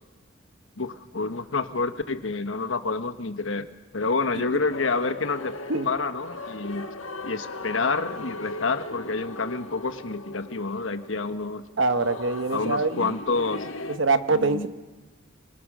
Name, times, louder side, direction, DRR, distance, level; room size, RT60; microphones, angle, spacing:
voice 1, 0.8-3.7 3.9-5.5 5.8-6.8 7.2-11.6 12.5-13.7 14.3-14.7, left 4 dB, 75° left, 9 dB, 1.3 m, -28 dB
sound 1, 4.7-14.0, left 2 dB, 90° left, 1.5 m, -38 dB
voice 2, 11.8-13.1 13.9-14.7, right 3 dB, 65° right, 10 dB, 1.1 m, -24 dB
29.5 x 25.0 x 6.3 m, 1.3 s
head